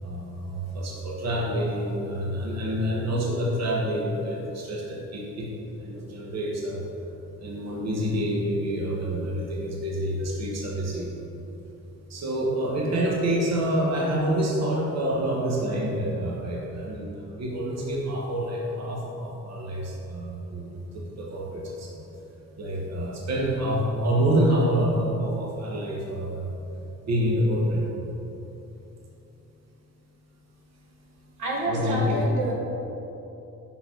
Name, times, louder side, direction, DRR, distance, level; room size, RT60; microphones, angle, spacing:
voice 1, 0.0-5.5 5.8-6.8 7.4-11.1 12.1-22.0 22.6-26.5 27.0-27.8 31.6-32.3, right 1 dB, 60° right, -3 dB, 1.3 m, -27 dB
voice 2, 31.4-32.5, right 1 dB, 80° right, -3 dB, 1.3 m, -28 dB
5.4 x 5.0 x 5.1 m, 3.0 s
cardioid pair, 90°, 30 cm